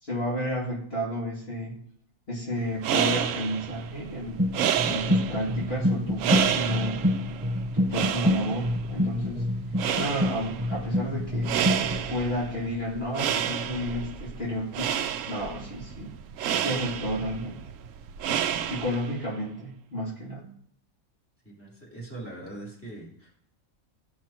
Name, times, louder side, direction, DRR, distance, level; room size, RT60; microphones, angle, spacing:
voice 1, 0.0-1.8 2.3-4.4 4.9-7.0 7.7-9.5 9.9-11.6 12.1-16.1 16.6-17.6 18.7-20.5, equal, 45° left, -7 dB, 2.6 m, -32 dB
sound 1, 2.6-19.2, right 9 dB, 70° right, 0.9 m, -30 dB
sound 2, 4.4-12.1, left 1 dB, 10° right, 3.8 m, -27 dB
voice 2, 21.4-23.4, right 2 dB, 10° left, -6 dB, 3.2 m, -41 dB
14.0 x 6.1 x 2.9 m, 0.63 s
omnidirectional pair, 1.5 m